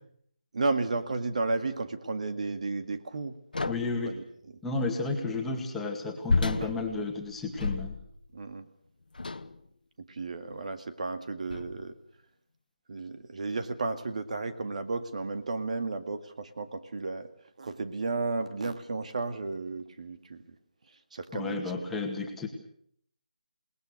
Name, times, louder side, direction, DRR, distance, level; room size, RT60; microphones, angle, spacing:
voice 1, 0.5-3.4 4.0-4.2 6.6-6.7 8.3-8.7 10.1-12.0 12.9-17.3 17.6-20.4 21.1-21.7, right 3 dB, 50° right, 9 dB, 2.0 m, -33 dB
sound 1, 3.5-4.1 6.3-8.3 9.1-9.6 10.5-10.6 11.5-11.9, left 3 dB, 75° left, 1.5 m, -31 dB
voice 2, 3.6-4.1 4.6-7.9 21.3-22.5, left 3 dB, 5° left, 0 dB, 2.1 m, -32 dB
28.5 x 19.5 x 6.6 m, 0.64 s
figure-of-eight pair, 165°, 5 cm